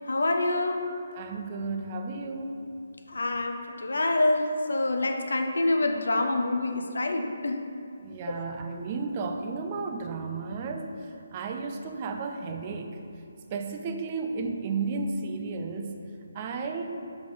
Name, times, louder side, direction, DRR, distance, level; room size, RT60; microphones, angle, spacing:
voice 1, 0.1-0.8 3.1-7.6 8.3-8.4, left 2 dB, 65° left, 5 dB, 0.6 m, -26 dB
voice 2, 0.8-2.6 8.0-10.9 11.3-13.0 13.5-15.9 16.3-17.0, right 4 dB, 30° right, 5 dB, 0.5 m, -33 dB
5.2 x 5.1 x 5.0 m, 2.5 s
figure-of-eight pair, 145°, 0 cm